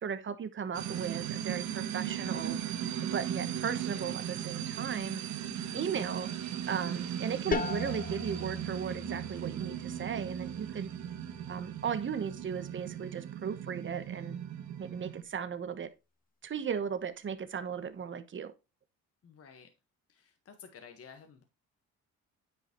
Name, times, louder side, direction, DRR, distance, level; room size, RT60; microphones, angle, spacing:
voice 1, 0.0-2.6 3.0-5.2 5.7-6.3 6.7-10.9 11.5-14.4 14.8-15.9 16.4-18.5, right 7 dB, 40° right, 1.1 m, -36 dB
sound 1, 0.7-15.2, right 10 dB, 70° right, 1.2 m, -37 dB
voice 2, 5.4-5.9 19.2-19.7 20.1-21.4, left 6 dB, 50° left, 1.5 m, -52 dB
sound 2, 7.5-13.0, left 6 dB, 30° left, 0.6 m, -41 dB
9.4 x 5.2 x 3.0 m
cardioid pair, 90°, 30 cm